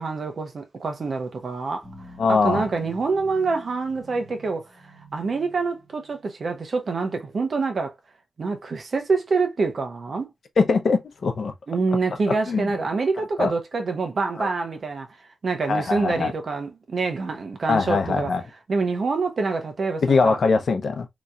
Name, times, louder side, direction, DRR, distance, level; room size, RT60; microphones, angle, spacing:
voice 1, 0.0-1.9 2.3-4.7 5.1-7.9 8.4-10.3 11.7-15.1 15.4-18.3 18.7-20.4, right 4 dB, 55° right, 0.9 m, -26 dB
sound 1, 1.8-6.4, equal, 5° left, 1.6 m, -47 dB
voice 2, 2.2-2.7 10.6-11.5 12.3-12.8 13.4-13.5 14.4-14.5 15.7-16.3 17.7-18.4 20.0-21.1, left 4 dB, 60° left, 0.7 m, -22 dB
4.1 x 3.0 x 2.4 m
wide cardioid pair, 140°, 0 cm